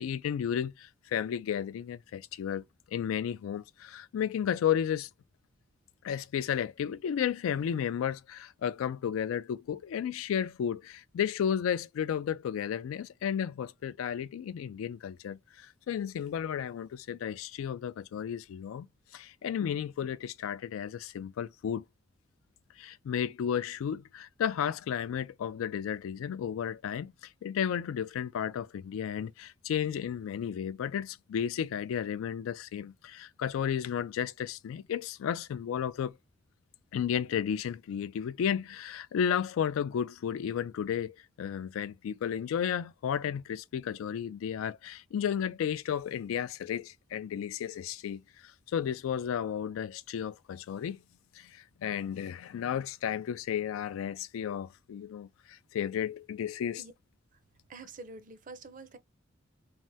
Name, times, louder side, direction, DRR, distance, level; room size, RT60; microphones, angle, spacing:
voice 1, 0.0-5.1 6.0-18.9 19.1-21.8 22.8-36.1 36.9-51.0 51.3-56.8, left 8 dB, 85° left, 0.3 m, -33 dB
voice 2, 57.7-59.0, right 3 dB, 40° right, 0.5 m, -46 dB
3.2 x 2.0 x 2.7 m
head